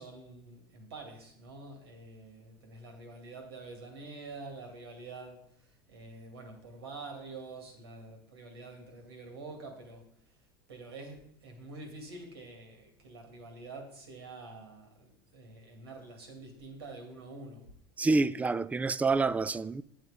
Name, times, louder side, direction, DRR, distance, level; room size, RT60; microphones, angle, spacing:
voice 1, 0.0-10.1 10.7-17.7, right 3 dB, 90° right, 2.3 m, -47 dB
voice 2, 18.0-19.8, right 3 dB, 10° right, 0.4 m, -27 dB
8.7 x 6.7 x 5.0 m
hypercardioid pair, 90°, 13 cm